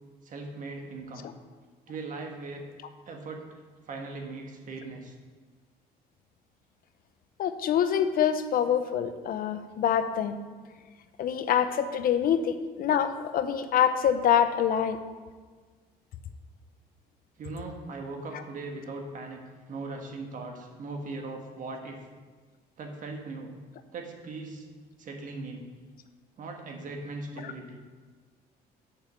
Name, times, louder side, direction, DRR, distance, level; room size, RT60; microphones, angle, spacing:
voice 1, 0.2-1.3 1.9-2.7 3.0-5.1 17.4-19.4 19.7-22.0 22.8-23.5 23.9-24.6 25.0-25.7 26.4-27.8, right 3 dB, 50° right, 2 dB, 1.5 m, -39 dB
voice 2, 7.4-10.4 11.2-15.0, left 9 dB, 60° left, 10 dB, 0.6 m, -25 dB
6.8 x 5.6 x 7.1 m, 1.5 s
cardioid pair, 110°, 17 cm